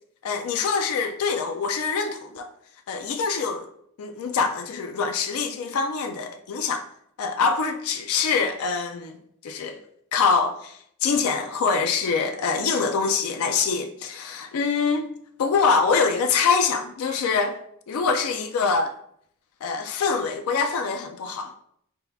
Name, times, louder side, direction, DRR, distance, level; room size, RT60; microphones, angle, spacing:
voice 1, 0.2-2.5 2.9-3.7 4.0-6.8 7.2-9.2 9.4-9.8 10.1-15.1 15.4-17.6 17.9-18.9 19.6-21.5, left 5 dB, 80° left, 0.4 m, -24 dB
5.3 x 2.3 x 3.3 m
head